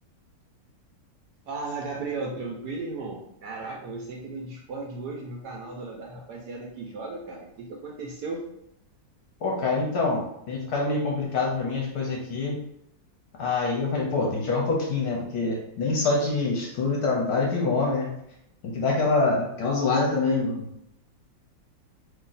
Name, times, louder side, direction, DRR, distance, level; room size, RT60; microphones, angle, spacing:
voice 1, 1.5-8.4, right 3 dB, 70° right, -1 dB, 1.0 m, -35 dB
voice 2, 9.4-10.2 10.5-12.6 13.4-18.1 18.7-20.7, left 3 dB, 65° left, -2 dB, 1.1 m, -25 dB
3.0 x 2.7 x 3.9 m, 0.79 s
omnidirectional pair, 2.1 m